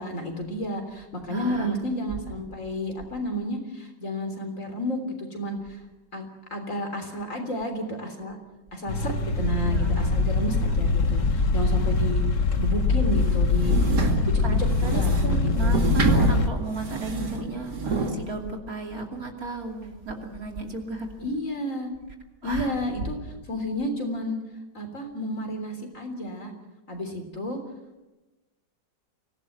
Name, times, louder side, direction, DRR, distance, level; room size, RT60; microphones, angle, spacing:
voice 1, 0.0-5.8 6.1-8.4 8.7-12.2 12.6-13.8 14.2-16.0 17.2-17.6 21.2-21.9 22.4-24.4 24.7-26.5 26.9-27.6, equal, 45° left, 5 dB, 3.9 m, -31 dB
voice 2, 1.3-1.7 9.7-10.2 13.6-14.0 14.4-21.1 22.4-22.8, right 3 dB, 55° right, 2 dB, 3.2 m, -34 dB
sound 1, 8.9-16.5, left 3 dB, 80° left, 2.3 m, -23 dB
sound 2, 13.1-18.2, right 3 dB, 70° right, 2.7 m, -28 dB
25.0 x 17.0 x 8.1 m, 1.1 s
omnidirectional pair, 1.9 m